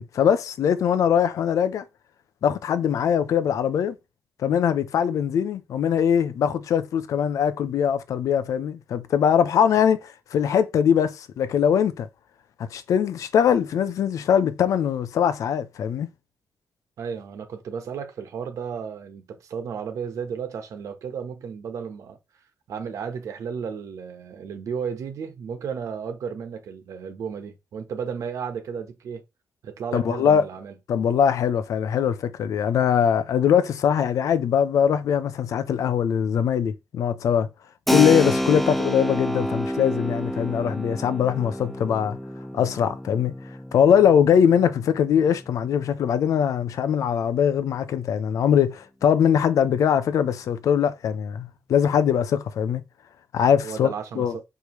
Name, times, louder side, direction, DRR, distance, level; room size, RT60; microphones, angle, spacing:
voice 1, 0.0-1.8 2.4-4.0 4.4-12.1 12.6-16.1 29.9-30.4 30.9-37.5 37.9-42.2 42.5-43.3 43.7-52.8 53.3-53.9 54.2-54.3, left 8 dB, 80° left, 0.7 m, -22 dB
voice 2, 17.0-22.2 22.7-29.2 29.6-30.7 53.6-54.4, right 6 dB, 75° right, 1.3 m, -33 dB
Keyboard (musical), 37.9-46.2, equal, ahead, 0.4 m, -29 dB
6.4 x 4.9 x 3.2 m
wide cardioid pair, 175°, 6 cm